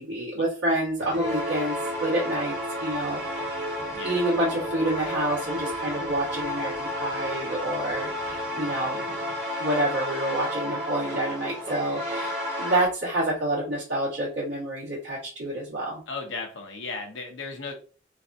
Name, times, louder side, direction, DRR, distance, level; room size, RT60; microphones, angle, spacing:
voice 1, 0.0-3.4 4.0-9.0 9.6-16.0, right 1 dB, 85° right, -9 dB, 1.5 m, -28 dB
sound 1, 1.0-12.9, equal, 40° right, 1.4 m, -31 dB
voice 2, 16.1-17.7, left 4 dB, 85° left, 3 dB, 0.7 m, -35 dB
3.4 x 2.4 x 2.6 m, 0.38 s
head